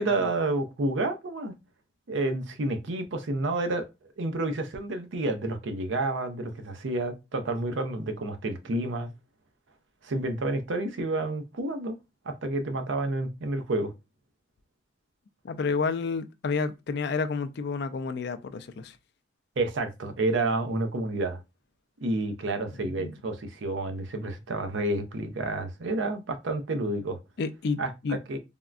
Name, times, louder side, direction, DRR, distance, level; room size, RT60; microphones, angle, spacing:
voice 1, 0.0-1.6 2.1-3.9 4.2-9.1 10.0-12.0 12.2-13.9 19.6-21.4 22.0-27.2 27.8-28.4, right 2 dB, 75° right, 0.5 m, -29 dB
voice 2, 15.4-19.0 22.7-23.1 27.4-28.2, left 4 dB, 55° left, 0.3 m, -30 dB
3.5 x 2.1 x 2.4 m
head